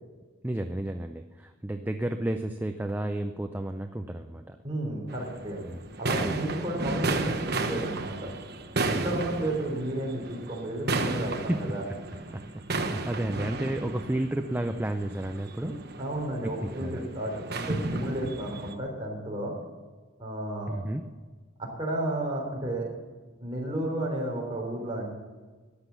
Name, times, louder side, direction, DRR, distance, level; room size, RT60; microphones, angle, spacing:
voice 1, 0.4-4.6 5.7-5.9 6.2-6.4 8.9-9.2 11.5-11.7 12.3-15.7 16.4-17.1 20.7-21.0, right 1 dB, 10° right, 6 dB, 0.5 m, -32 dB
voice 2, 4.6-5.6 6.0-8.3 9.0-11.8 15.6-15.7 16.0-19.5 20.2-20.8 21.6-22.9 23.4-25.1, right 1 dB, 25° right, -1 dB, 3.6 m, -32 dB
sound 1, 5.1-18.7, right 3 dB, 50° right, 1.2 m, -33 dB
13.5 x 10.0 x 7.0 m, 1.3 s
head